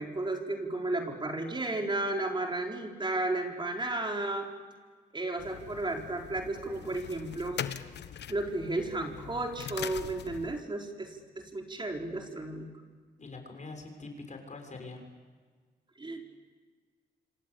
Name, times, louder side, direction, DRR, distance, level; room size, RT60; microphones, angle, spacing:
voice 1, 0.0-4.5 5.1-7.6 8.3-12.7 16.0-16.2, right 2 dB, 25° right, 2 dB, 4.2 m, -33 dB
sound 1, 5.4-10.6, left 9 dB, 75° left, 1.2 m, -42 dB
voice 2, 13.2-15.1, left 3 dB, 45° left, 4 dB, 6.8 m, -44 dB
27.0 x 26.0 x 8.6 m, 1.6 s
cardioid pair, 65°, 18 cm